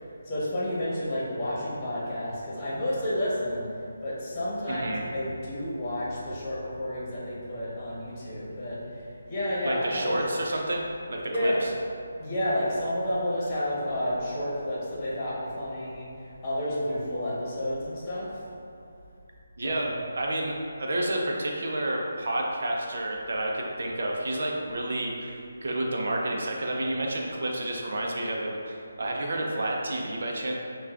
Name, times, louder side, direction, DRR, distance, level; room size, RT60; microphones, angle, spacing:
voice 1, 0.2-3.7 4.0-10.2 11.3-11.6 12.2-18.3 19.6-20.0, left 1 dB, 25° left, -8 dB, 1.1 m, -30 dB
voice 2, 4.7-5.0 9.6-10.8 11.1-11.5 19.6-30.5, right 1 dB, 60° right, -1 dB, 0.7 m, -30 dB
6.3 x 2.4 x 2.5 m, 2.5 s
figure-of-eight pair, 160°, 0 cm